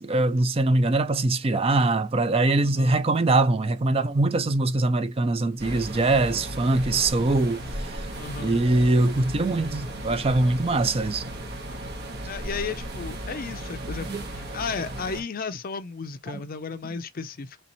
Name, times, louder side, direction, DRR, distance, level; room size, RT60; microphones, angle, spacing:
voice 1, 0.0-8.0 8.4-11.2 14.1-14.2, right 2 dB, 30° right, 0.4 m, -23 dB
voice 2, 2.6-3.0 8.2-8.6 12.3-17.6, left 5 dB, 45° left, 0.5 m, -34 dB
sound 1, 5.6-15.2, right 1 dB, 55° right, 1.2 m, -35 dB
3.3 x 3.0 x 4.0 m
head